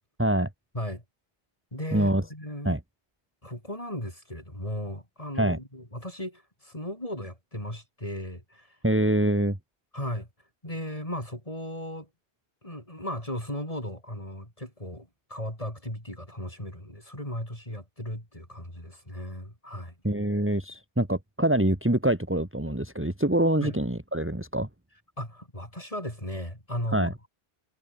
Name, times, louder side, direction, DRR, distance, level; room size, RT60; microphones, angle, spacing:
voice 1, 0.2-0.5 1.9-2.2 2.6-2.8 5.4-5.6 8.8-9.6 20.0-24.7 26.9-27.1, right 1 dB, 10° right, 2.3 m, -25 dB
voice 2, 1.7-2.8 3.4-8.8 9.9-10.3 10.6-12.1 12.6-19.9 23.6-23.8 25.2-27.3, left 1 dB, 30° left, 8.0 m, -36 dB
omnidirectional pair, 1.2 m